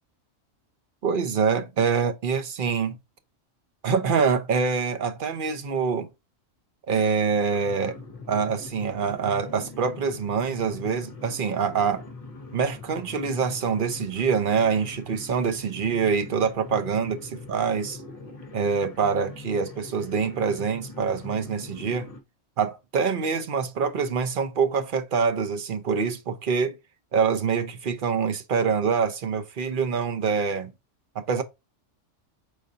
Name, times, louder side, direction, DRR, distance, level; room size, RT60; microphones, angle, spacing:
voice 1, 1.0-3.0 3.8-6.1 6.9-8.0 8.3-12.1 12.5-18.0 18.5-22.1 22.6-26.8 27.1-30.7 31.1-31.4, right 5 dB, 50° right, 0.8 m, -25 dB
sound 1, 7.5-22.2, left 3 dB, 35° left, 0.8 m, -42 dB
4.9 x 4.0 x 2.5 m
omnidirectional pair, 1.3 m